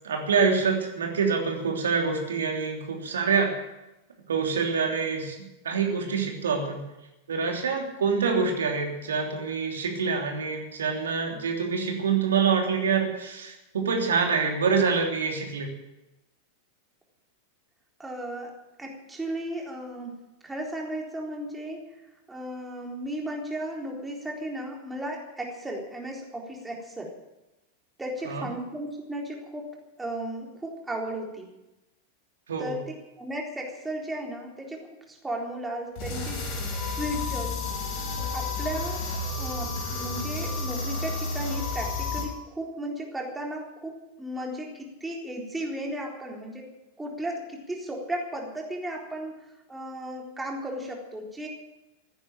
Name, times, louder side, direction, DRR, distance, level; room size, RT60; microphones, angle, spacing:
voice 1, 0.0-3.5 4.3-5.4 5.6-6.8 7.3-15.7 28.3-28.5 32.5-32.8, right 5 dB, 65° right, 2 dB, 3.1 m, -26 dB
voice 2, 18.0-18.5 18.8-20.2 20.4-22.0 22.3-27.2 28.0-31.5 32.6-32.8 33.2-36.4 36.9-37.6 38.3-39.1 39.4-46.7 47.0-51.5, right 1 dB, 10° right, 0 dB, 3.9 m, -35 dB
sound 1, 36.0-42.2, left 3 dB, 45° left, 5.0 m, -31 dB
15.5 x 10.0 x 9.2 m, 0.97 s
figure-of-eight pair, 90°, 0 cm